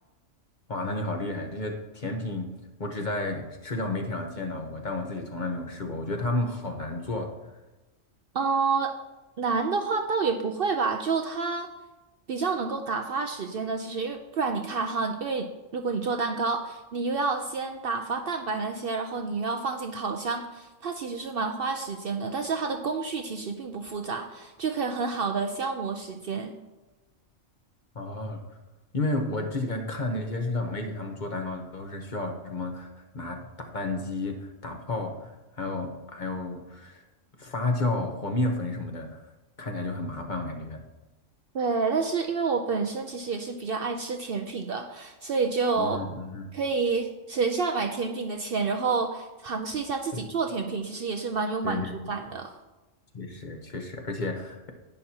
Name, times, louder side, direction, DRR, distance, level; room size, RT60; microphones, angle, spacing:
voice 1, 0.7-2.5 2.8-7.3 27.9-28.4 28.9-32.9 33.1-37.0 37.4-39.2 39.6-40.8 45.8-46.5 50.1-50.2 51.6-52.1 53.1-54.7, left 2 dB, 40° left, 3 dB, 1.0 m, -31 dB
voice 2, 8.3-9.0 9.4-11.7 12.3-26.5 41.5-46.0 46.5-52.6, right 4 dB, 55° right, 5 dB, 0.7 m, -29 dB
10.5 x 9.2 x 2.8 m, 1.1 s
omnidirectional pair, 1.3 m